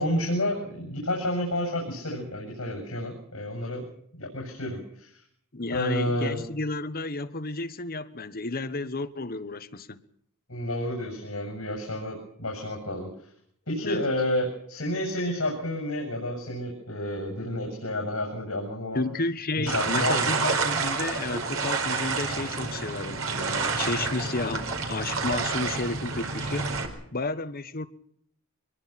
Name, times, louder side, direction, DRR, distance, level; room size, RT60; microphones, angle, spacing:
voice 1, 0.0-3.8 4.2-5.2 5.7-6.4 10.5-13.3 13.7-19.0 19.6-20.3, left 1 dB, 75° left, 7.1 m, -30 dB
voice 2, 5.5-10.0 13.8-14.0 18.9-26.7 27.1-27.9, left 2 dB, 45° left, 1.3 m, -32 dB
sound 1, 19.7-26.9, right 4 dB, 75° right, 4.8 m, -29 dB
24.5 x 21.5 x 5.9 m
head